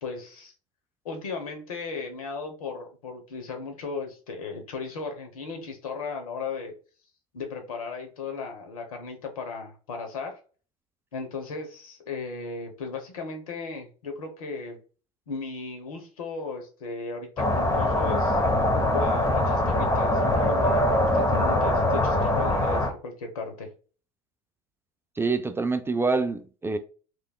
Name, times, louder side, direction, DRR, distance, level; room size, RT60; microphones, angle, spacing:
voice 1, 0.0-0.5 1.0-6.7 7.3-10.4 11.1-14.8 15.3-18.4 18.9-23.7, left 4 dB, 80° left, 0.9 m, -36 dB
sound 1, 17.4-22.9, left 1 dB, 20° left, 1.0 m, -23 dB
voice 2, 25.2-26.8, right 3 dB, 15° right, 0.4 m, -26 dB
3.4 x 3.1 x 2.3 m
hypercardioid pair, 70°, 18 cm